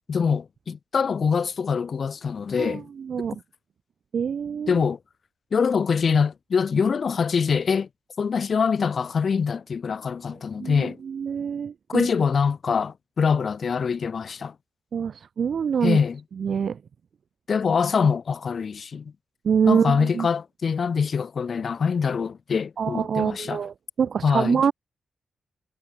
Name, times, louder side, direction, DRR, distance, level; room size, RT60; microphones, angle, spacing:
voice 1, 0.1-2.9 4.7-5.0 5.5-7.9 8.2-11.0 11.9-14.5 15.8-16.2 17.5-19.1 19.7-23.6 24.2-24.6, left 6 dB, 45° left, 0.7 m, -24 dB
voice 2, 2.6-3.4 4.1-4.8 10.6-12.1 14.9-16.0 16.4-16.8 19.4-20.3 22.8-24.7, right 7 dB, 55° right, 0.7 m, -25 dB
wide cardioid pair, 165°, 0 cm